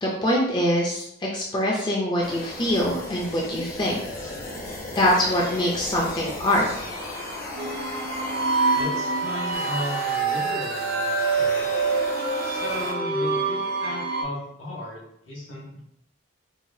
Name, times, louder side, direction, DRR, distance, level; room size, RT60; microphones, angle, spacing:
voice 1, 0.0-4.0 5.0-6.7, equal, 20° left, -3 dB, 0.5 m, -23 dB
sound 1, 2.2-12.9, left 1 dB, 45° left, 0.8 m, -35 dB
sound 2, 7.6-14.2, right 4 dB, 50° right, 0.6 m, -26 dB
voice 2, 8.7-11.7 12.4-15.8, left 1 dB, 70° left, -5 dB, 1.4 m, -35 dB
4.7 x 2.3 x 2.7 m, 0.77 s
head